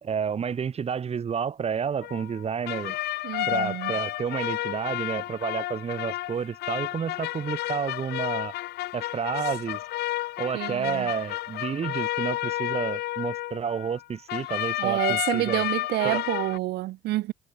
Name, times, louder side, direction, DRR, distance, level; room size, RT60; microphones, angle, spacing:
voice 1, 0.0-3.0 3.5-8.5 8.9-9.8 10.4-15.6 16.0-16.2, right 7 dB, 35° right, 2.9 m, -30 dB
sound 1, 2.0-14.0 14.3-16.6, left 16 dB, 75° left, 1.0 m, -31 dB
voice 2, 3.2-3.9 10.5-11.1 14.8-17.3, right 17 dB, 80° right, 1.6 m, -28 dB
cardioid pair, 110°, 17 cm